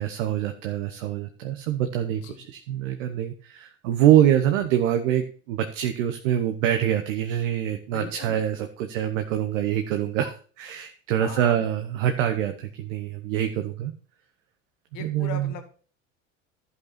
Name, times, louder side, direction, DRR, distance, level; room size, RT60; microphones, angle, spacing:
voice 1, 0.0-13.9 15.0-15.5, right 11 dB, 65° right, 7 dB, 1.0 m, -25 dB
voice 2, 7.9-8.4 11.2-11.6 14.9-15.6, left 7 dB, 50° left, 6 dB, 2.1 m, -38 dB
12.0 x 5.5 x 4.2 m, 0.41 s
hypercardioid pair, 85°, 40 cm